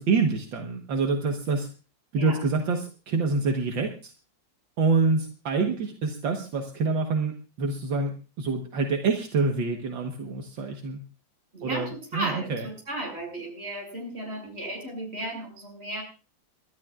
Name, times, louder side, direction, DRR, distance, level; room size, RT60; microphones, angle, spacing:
voice 1, 0.0-1.7 2.1-4.1 4.8-11.0 11.6-12.7, right 4 dB, 75° right, 4 dB, 2.0 m, -26 dB
voice 2, 11.5-16.0, right 1 dB, 30° right, 1 dB, 6.7 m, -35 dB
29.0 x 12.5 x 2.4 m, 0.32 s
omnidirectional pair, 2.1 m